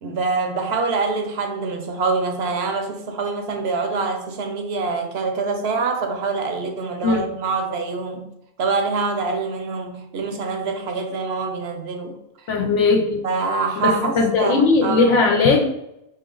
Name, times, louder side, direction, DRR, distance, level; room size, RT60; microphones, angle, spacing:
voice 1, 0.0-8.3 8.6-12.2 13.2-15.2, right 4 dB, 60° right, 0.8 m, -25 dB
voice 2, 12.5-13.2 13.8-15.7, left 4 dB, 70° left, 0.9 m, -18 dB
4.4 x 2.9 x 3.7 m
omnidirectional pair, 1.3 m